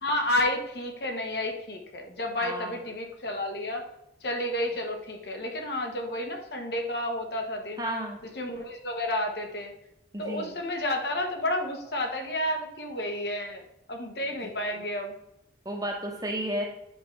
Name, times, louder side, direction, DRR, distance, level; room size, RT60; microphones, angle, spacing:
voice 1, 0.0-3.8 4.2-7.8 8.3-9.7 10.2-13.6 13.9-15.1, left 1 dB, 65° left, 3 dB, 1.2 m, -31 dB
voice 2, 2.4-2.8 7.8-8.2 10.1-10.5 14.4-14.7 15.6-16.6, right 1 dB, 20° right, 1 dB, 1.0 m, -33 dB
8.1 x 4.8 x 3.2 m, 0.82 s
head